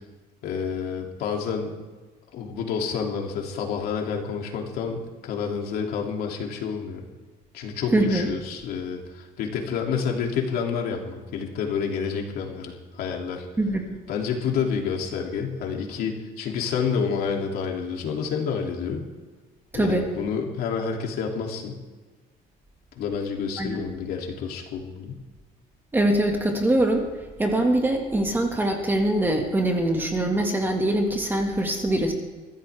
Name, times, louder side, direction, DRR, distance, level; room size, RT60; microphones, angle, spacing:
voice 1, 0.4-1.8 2.3-7.0 7.5-13.5 14.1-19.0 19.7-21.8 23.0-25.2, left 6 dB, 60° left, 1 dB, 2.9 m, -29 dB
voice 2, 7.9-8.3 13.6-13.8 19.7-20.1 23.6-23.8 25.9-27.1 27.4-32.1, right 1 dB, 10° right, 2 dB, 2.0 m, -23 dB
23.0 x 15.0 x 3.6 m, 1.3 s
cardioid pair, 155°, 18 cm